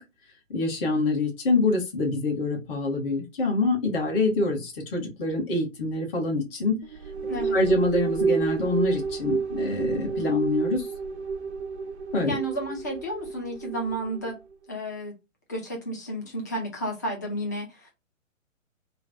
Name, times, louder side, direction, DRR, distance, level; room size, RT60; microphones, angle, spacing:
voice 1, 0.5-6.8 7.3-10.9 12.1-12.3, left 2 dB, 45° left, 1.3 m, -26 dB
sound 1, 6.8-14.4, right 5 dB, 55° right, 0.6 m, -30 dB
voice 2, 7.3-7.6 12.3-14.4 14.7-15.1 15.5-17.9, right 1 dB, 15° left, 0.4 m, -32 dB
3.1 x 2.1 x 2.5 m
figure-of-eight pair, 130°, 40 cm